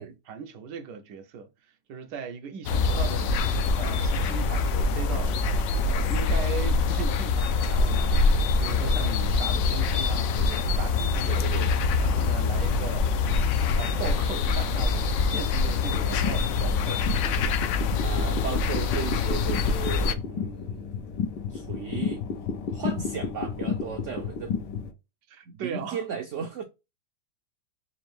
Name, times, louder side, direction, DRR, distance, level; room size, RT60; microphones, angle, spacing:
voice 1, 0.3-1.5 1.9-3.3 3.8-5.5 5.9-8.2 8.6-11.6 12.0-13.1 13.5-17.1 18.1-18.2 25.3-26.0, right 6 dB, 85° right, 1.3 m, -38 dB
sound 1, 2.6-20.1, left 4 dB, 70° left, 0.8 m, -25 dB
voice 2, 11.3-11.7 18.0-20.9 21.5-22.2 22.7-24.5 25.5-26.6, right 7 dB, 70° right, 0.7 m, -35 dB
sound 2, 15.8-24.9, left 6 dB, 90° left, 1.4 m, -32 dB
4.5 x 2.6 x 3.1 m
omnidirectional pair, 1.8 m